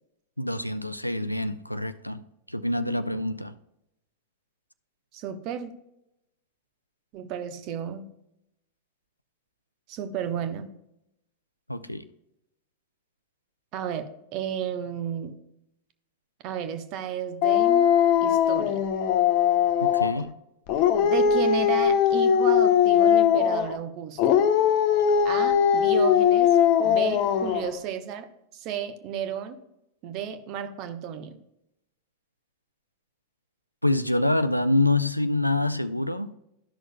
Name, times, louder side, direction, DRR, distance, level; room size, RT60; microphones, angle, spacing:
voice 1, 0.4-3.5 11.7-12.1 19.8-20.3 33.8-36.3, left 2 dB, 90° left, 0.4 m, -26 dB
voice 2, 5.1-5.7 7.1-8.1 9.9-10.7 13.7-15.3 16.4-17.9 18.2-18.8 21.0-24.4 25.2-26.6 26.8-28.3 28.5-29.6 30.0-31.4, right 8 dB, 40° right, 0.9 m, -33 dB
Dog, 17.4-20.2 20.7-23.8 24.2-27.7, left 8 dB, 45° left, 0.7 m, -20 dB
12.5 x 6.2 x 2.2 m
figure-of-eight pair, 90°, 0 cm